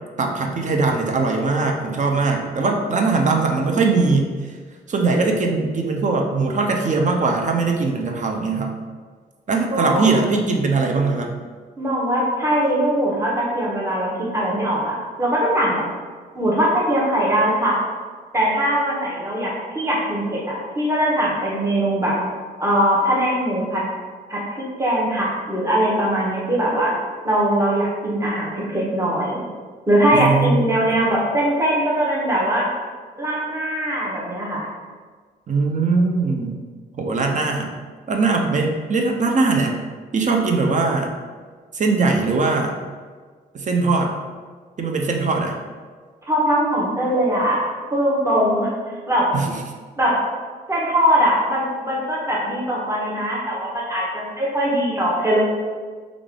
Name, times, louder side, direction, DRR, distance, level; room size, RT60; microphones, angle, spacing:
voice 1, 0.2-4.3 4.9-8.8 9.5-11.4 30.1-31.0 35.5-36.6 36.9-37.7 38.1-39.8 40.1-41.1 41.7-42.8 43.5-44.1 44.8-45.6 49.3-49.5, right 3 dB, 45° right, 2 dB, 0.5 m, -20 dB
voice 2, 9.7-10.1 11.8-15.8 16.3-17.8 18.3-22.1 22.6-23.8 24.3-26.9 27.2-29.4 29.9-32.6 33.2-34.7 46.3-47.6 47.9-48.7 49.1-49.3 50.0-50.1 50.7-55.4, right 1 dB, 15° right, -5 dB, 1.1 m, -21 dB
3.1 x 2.5 x 3.7 m, 1.5 s
supercardioid pair, 60°, 17 cm